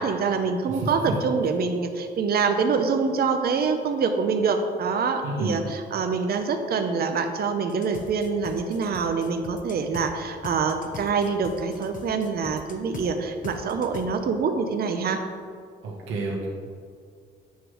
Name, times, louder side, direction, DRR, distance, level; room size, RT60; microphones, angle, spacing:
voice 1, 0.0-15.2, right 5 dB, 50° right, 6 dB, 0.6 m, -25 dB
voice 2, 5.2-5.6 15.8-16.5, right 3 dB, 85° right, -4 dB, 1.3 m, -29 dB
sound 1, 7.7-10.1 10.4-13.1 13.4-14.0, left 4 dB, 40° left, 0.8 m, -40 dB
8.2 x 3.2 x 6.1 m, 2.2 s
cardioid pair, 90°, 20 cm